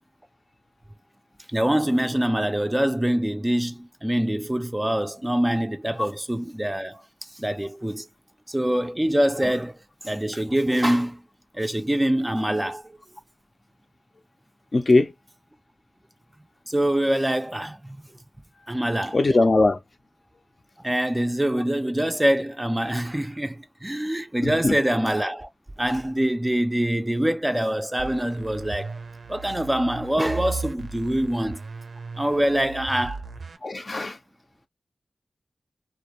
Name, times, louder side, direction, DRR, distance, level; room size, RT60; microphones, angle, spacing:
voice 1, 1.5-7.0 7.3-8.1 8.5-9.8 10.0-11.2 11.5-12.9 16.7-18.1 18.7-19.2 20.8-25.5 25.8-29.0 29.3-31.6 32.2-33.2, right 1 dB, 15° right, 0.4 m, -24 dB
voice 2, 14.7-15.1 19.1-19.8 24.4-24.8 33.6-34.2, left 2 dB, 45° left, 0.5 m, -20 dB
sound 1, 28.0-33.6, right 4 dB, 70° right, 0.5 m, -37 dB
2.2 x 2.0 x 2.8 m
wide cardioid pair, 80°, 0 cm